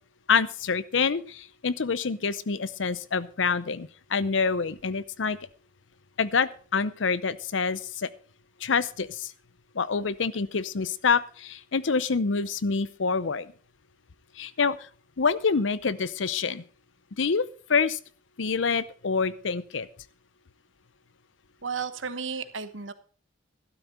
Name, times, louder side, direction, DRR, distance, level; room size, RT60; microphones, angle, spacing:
voice 1, 0.3-5.4 6.2-8.1 8.6-9.3 9.7-13.5 14.4-14.9 15.2-16.6 17.2-17.4 17.7-18.0 18.4-19.9, left 5 dB, 80° left, 17 dB, 0.7 m, -26 dB
voice 2, 21.6-22.9, right 5 dB, 85° right, 11 dB, 1.2 m, -33 dB
13.0 x 12.0 x 4.3 m, 0.40 s
head